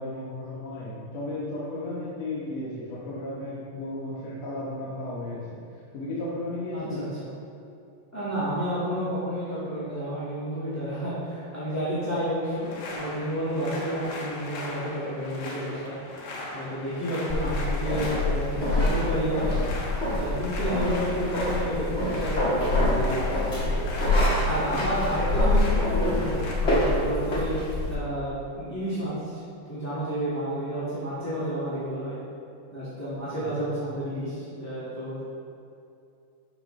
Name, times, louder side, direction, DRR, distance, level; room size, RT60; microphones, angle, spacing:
voice 1, 0.0-5.6 5.9-7.0 33.4-33.5, left 1 dB, 60° left, -7 dB, 2.1 m, -34 dB
voice 2, 6.7-7.1 8.1-12.7 12.9-15.9 16.5-19.6 20.1-23.7 24.4-27.6 27.9-29.4 29.7-32.2 32.7-35.2, equal, 10° left, -13 dB, 1.0 m, -30 dB
sound 1, 12.4-26.5, left 2 dB, 85° left, 3.0 m, -38 dB
sound 2, 17.3-27.9, left 1 dB, 45° left, 0.8 m, -26 dB
12.0 x 5.9 x 3.3 m, 2.6 s
omnidirectional pair, 4.0 m